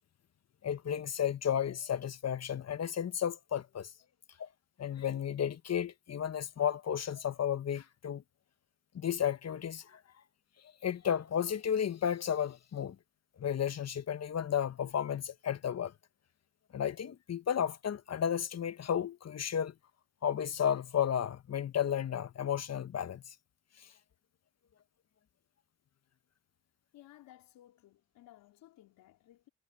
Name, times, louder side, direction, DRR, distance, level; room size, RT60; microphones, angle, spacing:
voice 1, 0.6-3.9 4.4-4.5 4.8-8.2 8.9-10.0 10.8-13.0 13.4-15.9 16.7-19.7 20.2-23.2, left 9 dB, 50° left, 1.3 m, -33 dB
voice 2, 26.9-29.5, left 14 dB, 80° left, 4.1 m, -58 dB
supercardioid pair, 60°, 34 cm